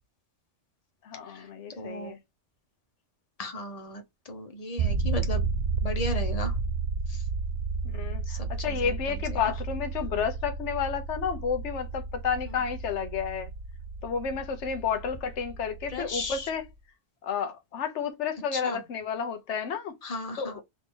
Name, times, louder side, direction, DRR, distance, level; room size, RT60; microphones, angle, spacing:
voice 1, 1.0-2.2 7.8-13.5 14.0-16.7 17.2-19.9 20.4-20.6, left 6 dB, 75° left, 1.1 m, -31 dB
voice 2, 1.8-2.1 3.4-5.5 5.8-6.5 7.1-7.2 8.3-8.9 9.3-9.4 12.5-12.6 15.9-16.5 18.5-18.8 20.0-20.6, left 2 dB, 35° left, 0.9 m, -36 dB
sound 1, 4.8-16.7, right 4 dB, 55° right, 0.5 m, -32 dB
4.1 x 2.7 x 3.6 m
omnidirectional pair, 1.2 m